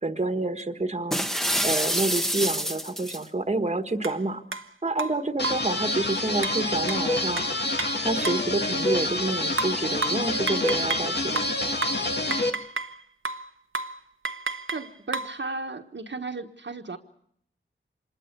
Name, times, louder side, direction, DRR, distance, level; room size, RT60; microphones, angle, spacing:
voice 1, 0.0-1.3 1.6-4.4 4.8-7.4 8.0-11.5, right 2 dB, 30° right, 8 dB, 1.5 m, -28 dB
sound 1, 1.1-3.2, equal, ahead, 1.1 m, -27 dB
sound 2, 4.0-4.2 4.5-4.7 5.0-5.7 6.4-8.5 9.6-11.1 11.4-13.0 13.3-13.5 13.7-14.0 14.3-15.4, right 3 dB, 90° right, 1.0 m, -32 dB
sound 3, 5.4-12.5, left 2 dB, 55° left, 1.9 m, -27 dB
voice 2, 14.7-17.0, right 3 dB, 65° right, 3 dB, 1.4 m, -35 dB
26.0 x 21.0 x 6.8 m, 0.66 s
wide cardioid pair, 80°, 20 cm